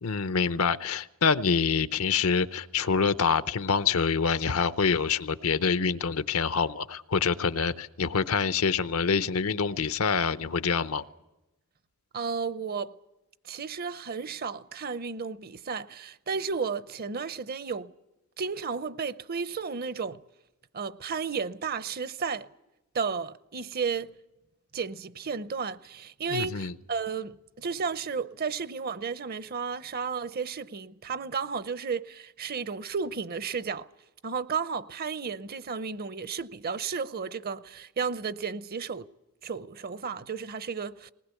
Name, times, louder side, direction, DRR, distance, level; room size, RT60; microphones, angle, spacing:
voice 1, 0.0-11.0 26.3-26.7, left 5 dB, 70° left, 0.8 m, -26 dB
voice 2, 12.1-13.0 13.4-17.9 18.4-20.2 20.7-22.5 22.9-24.1 24.7-33.9 34.2-39.1 39.4-41.1, right 5 dB, 45° right, 0.7 m, -33 dB
20.0 x 19.5 x 8.3 m
head